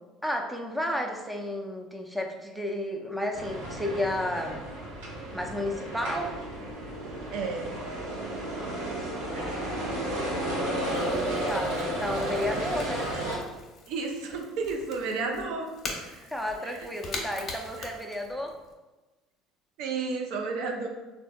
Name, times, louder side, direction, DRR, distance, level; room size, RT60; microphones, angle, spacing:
voice 1, 0.2-4.6 5.3-6.4 11.5-13.1 16.3-18.6, left 1 dB, ahead, 2 dB, 0.5 m, -32 dB
sound 1, 3.3-13.4, right 1 dB, 90° right, 0.9 m, -32 dB
voice 2, 7.3-7.7 13.9-16.3 16.6-16.8 17.8-17.9 19.8-20.9, right 4 dB, 70° right, 3 dB, 0.5 m, -32 dB
Crackle / Crack, 9.2-18.7, left 3 dB, 45° left, 0.8 m, -44 dB
3.4 x 2.5 x 2.3 m, 1.2 s
hypercardioid pair, 75°, 0 cm